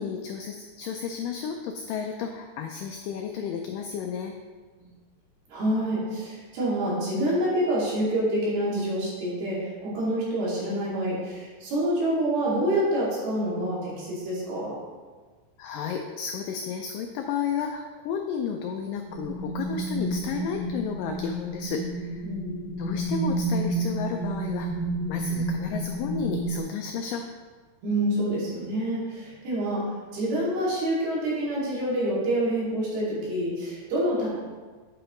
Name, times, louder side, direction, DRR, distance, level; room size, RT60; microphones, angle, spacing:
voice 1, 0.0-4.3 15.6-22.2 22.8-24.7 25.1-27.3, left 6 dB, 90° left, 4 dB, 1.9 m, -32 dB
voice 2, 5.5-14.7 22.2-22.5 27.8-29.9 30.1-34.3, right 1 dB, 75° right, -7 dB, 4.4 m, -27 dB
sound 1, 19.1-26.6, right 2 dB, 25° right, 0.9 m, -30 dB
8.8 x 7.9 x 3.1 m, 1.4 s
omnidirectional pair, 4.5 m